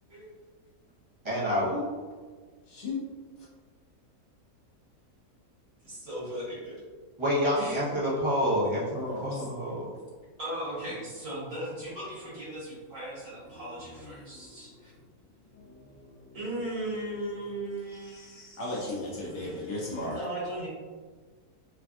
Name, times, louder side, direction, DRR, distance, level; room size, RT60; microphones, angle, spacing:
voice 1, 1.2-1.9 7.2-9.9, equal, 35° right, -8 dB, 0.4 m, -28 dB
voice 2, 2.7-3.1 8.9-9.5 13.5-13.6 14.0-14.8 15.5-16.4 17.9-20.2, left 2 dB, 65° left, -4 dB, 0.7 m, -37 dB
voice 3, 5.8-6.8 7.6-7.7 10.4-14.9 16.3-18.5 19.2-20.7, right 1 dB, 60° right, -9 dB, 1.5 m, -37 dB
3.3 x 2.3 x 2.4 m, 1.4 s
omnidirectional pair, 1.6 m